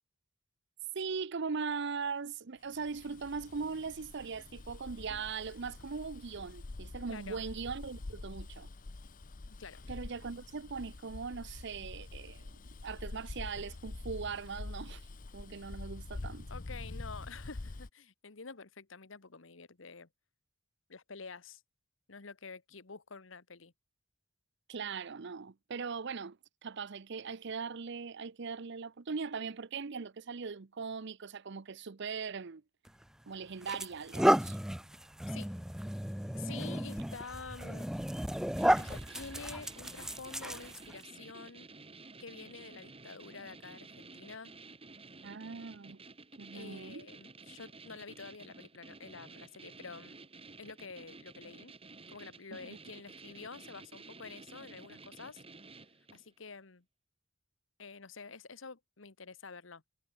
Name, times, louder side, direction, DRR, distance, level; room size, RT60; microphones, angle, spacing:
voice 1, 0.9-8.7 9.9-12.5 12.8-15.0 15.3-16.5 24.7-32.6 33.3-34.6 45.2-46.0 46.4-47.1 52.6-52.8, right 5 dB, 60° right, 0.7 m, -40 dB
Bus, 2.7-17.9, left 2 dB, 45° left, 0.7 m, -46 dB
voice 2, 7.1-7.4 9.5-9.8 16.5-20.1 20.9-21.6 22.1-23.7 35.3-35.5 36.3-37.9 38.8-41.7 42.2-44.5 46.5-50.1 50.6-51.7 52.1-55.4 56.1-56.8 57.8-59.8, left 4 dB, 70° left, 1.3 m, -48 dB
sound 1, 32.9-33.0 33.6-41.0, equal, 5° right, 0.5 m, -33 dB
sound 2, 38.6-56.3, right 3 dB, 30° right, 3.9 m, -52 dB
head